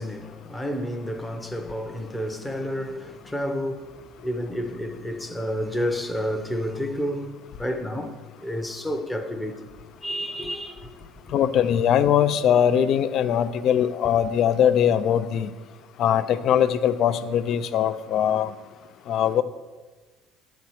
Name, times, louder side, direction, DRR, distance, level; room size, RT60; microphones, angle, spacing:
voice 1, 0.0-3.9 4.2-7.3 7.6-9.8 10.0-10.9, equal, 5° left, 0.7 m, -30 dB
voice 2, 11.3-15.5 16.0-18.5 19.1-19.4, left 9 dB, 40° left, 0.4 m, -21 dB
10.5 x 4.4 x 7.9 m
cardioid pair, 170°, 0 cm